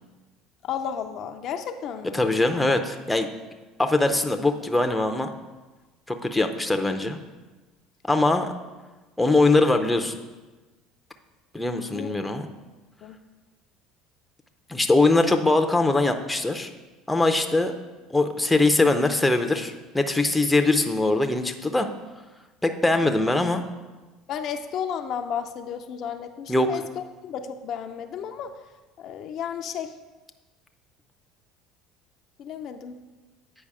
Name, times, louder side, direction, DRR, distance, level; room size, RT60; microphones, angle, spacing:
voice 1, 0.6-2.2 11.9-12.1 13.0-13.2 23.0-23.2 24.3-28.5 29.0-29.9 32.4-33.0, left 8 dB, 55° left, 6 dB, 0.5 m, -33 dB
voice 2, 2.1-3.3 3.8-5.3 6.1-7.2 8.1-8.5 9.2-10.2 11.5-12.5 14.7-16.7 17.1-17.7 18.1-21.9 22.6-23.6 26.5-26.7, left 2 dB, 5° left, 5 dB, 0.6 m, -22 dB
8.7 x 5.0 x 4.8 m, 1.2 s
supercardioid pair, 105°, 0 cm